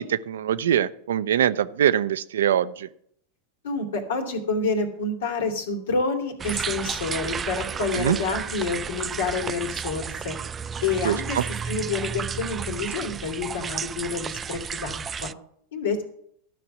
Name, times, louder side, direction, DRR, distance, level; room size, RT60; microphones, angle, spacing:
voice 1, 0.0-2.9 7.9-8.2 11.0-11.4, right 10 dB, 75° right, 15 dB, 0.6 m, -23 dB
voice 2, 3.6-10.4 10.8-11.4 11.7-15.3 15.7-16.0, left 4 dB, 75° left, 5 dB, 2.6 m, -28 dB
sound 1, 6.4-15.3, right 6 dB, 25° right, 0.4 m, -32 dB
12.5 x 6.0 x 8.0 m, 0.67 s
hypercardioid pair, 100°, 0 cm